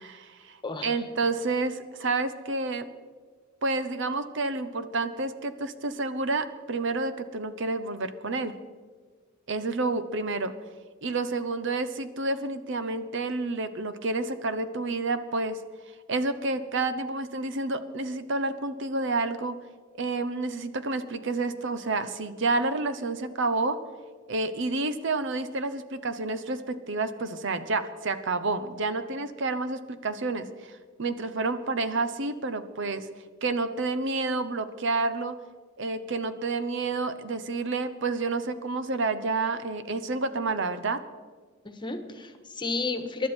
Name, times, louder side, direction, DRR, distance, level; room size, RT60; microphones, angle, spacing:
voice 1, 0.0-2.9 3.6-8.6 9.5-10.5 11.0-15.6 16.1-19.5 19.9-23.8 24.3-33.1 33.4-35.4 35.8-41.0, right 3 dB, 65° right, 11 dB, 0.9 m, -29 dB
voice 2, 41.6-43.3, left 3 dB, 25° left, 7 dB, 1.4 m, -32 dB
23.5 x 11.5 x 4.5 m, 1.5 s
head